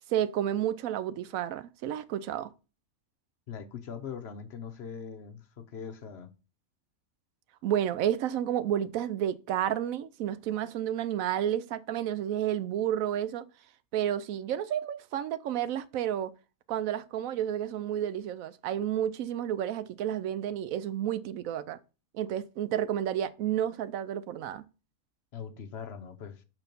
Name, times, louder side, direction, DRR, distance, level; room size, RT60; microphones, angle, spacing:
voice 1, 0.1-2.5 7.6-13.5 13.9-16.3 16.7-21.8 22.1-24.6, right 10 dB, 75° right, 1.0 m, -31 dB
voice 2, 3.5-6.3 25.3-26.4, left 7 dB, 55° left, 0.9 m, -41 dB
5.9 x 4.5 x 5.2 m
omnidirectional pair, 1.5 m